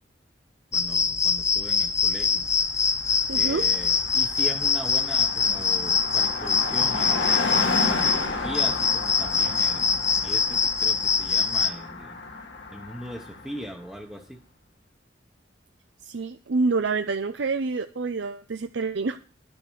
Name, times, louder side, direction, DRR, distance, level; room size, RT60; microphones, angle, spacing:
sound 1, 0.7-11.7, left 6 dB, 15° left, 0.6 m, -24 dB
voice 1, 0.7-2.5 3.3-7.3 7.8-9.9 10.2-12.2 12.7-14.4, equal, 5° right, 1 dB, 1.0 m, -39 dB
Car passing by, 2.4-2.5 2.7-13.7, left 3 dB, 65° left, 1.7 m, -32 dB
voice 2, 3.3-3.7 16.0-19.2, right 4 dB, 75° right, 8 dB, 0.6 m, -27 dB
11.5 x 7.1 x 6.3 m, 0.38 s
head